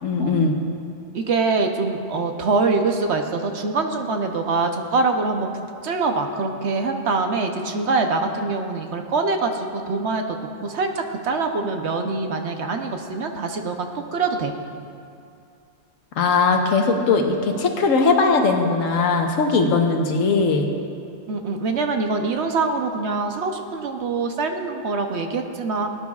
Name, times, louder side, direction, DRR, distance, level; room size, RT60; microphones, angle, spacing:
voice 1, 0.0-0.6 16.2-20.7, left 4 dB, 90° left, 4 dB, 1.3 m, -19 dB
voice 2, 1.1-5.5 5.8-14.5 21.3-25.9, right 3 dB, 60° right, 5 dB, 1.0 m, -24 dB
18.0 x 9.9 x 2.4 m, 2.4 s
omnidirectional pair, 1.3 m